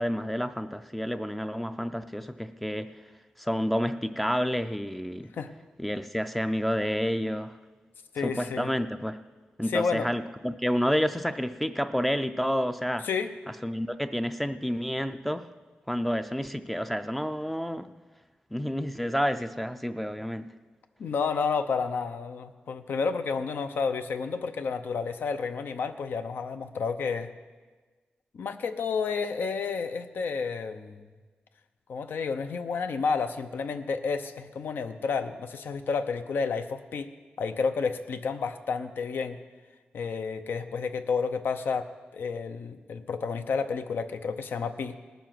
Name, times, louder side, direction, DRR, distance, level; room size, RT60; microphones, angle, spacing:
voice 1, 0.0-2.9 3.4-5.3 5.8-7.6 8.2-9.2 9.6-13.1 13.6-15.5 15.9-17.9 18.5-20.5, equal, 5° left, 9 dB, 0.3 m, -29 dB
voice 2, 8.1-8.7 9.7-10.1 13.0-13.3 21.0-27.3 28.3-31.1 31.9-37.1 37.4-39.4 39.9-41.9 42.1-45.0, left 5 dB, 80° left, 8 dB, 0.7 m, -30 dB
18.5 x 7.1 x 5.9 m, 1.4 s
wide cardioid pair, 175°, 3 cm